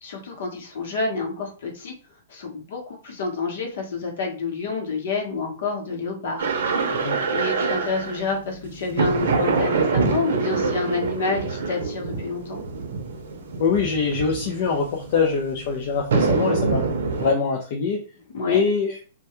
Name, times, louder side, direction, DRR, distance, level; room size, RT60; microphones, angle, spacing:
voice 1, 0.0-1.9 2.3-6.5 7.3-12.6 18.3-18.6, left 3 dB, 65° left, 1 dB, 0.9 m, -28 dB
sound 1, 6.4-17.3, right 4 dB, 75° right, 0.6 m, -26 dB
voice 2, 13.6-16.9 17.1-18.0 18.5-19.0, left 5 dB, 50° left, 0 dB, 0.4 m, -23 dB
2.2 x 2.2 x 2.9 m, 0.38 s
hypercardioid pair, 155°, 0 cm